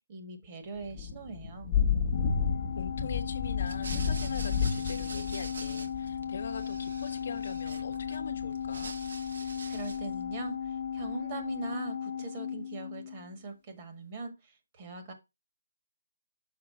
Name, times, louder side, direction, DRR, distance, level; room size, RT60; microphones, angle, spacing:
voice 1, 0.1-1.7 9.4-15.1, right 3 dB, 25° right, 1.6 m, -42 dB
Thunder / Rain, 0.8-10.3, left 6 dB, 15° left, 1.2 m, -33 dB
Organ, 2.1-13.4, left 8 dB, 35° left, 0.6 m, -36 dB
voice 2, 2.7-8.9, left 5 dB, 50° left, 1.1 m, -42 dB
sound 1, 3.6-6.2 6.5-8.2 8.5-10.1, right 4 dB, 60° right, 1.1 m, -45 dB
6.6 x 3.8 x 5.4 m
figure-of-eight pair, 160°, 0 cm